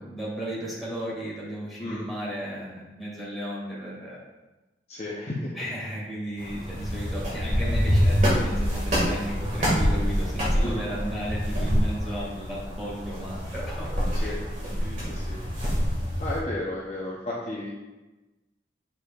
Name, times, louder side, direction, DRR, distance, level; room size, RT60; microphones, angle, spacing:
voice 1, 0.0-4.2 5.6-13.9 14.2-14.4 14.8-15.1, equal, ahead, -8 dB, 2.0 m, -35 dB
voice 2, 4.9-5.5 10.6-10.8 14.1-14.4 15.1-15.4 16.2-17.8, left 1 dB, 35° left, -5 dB, 0.8 m, -33 dB
sound 1, 6.4-16.4, equal, 40° right, 1.8 m, -26 dB
8.2 x 4.8 x 2.4 m, 1.1 s
head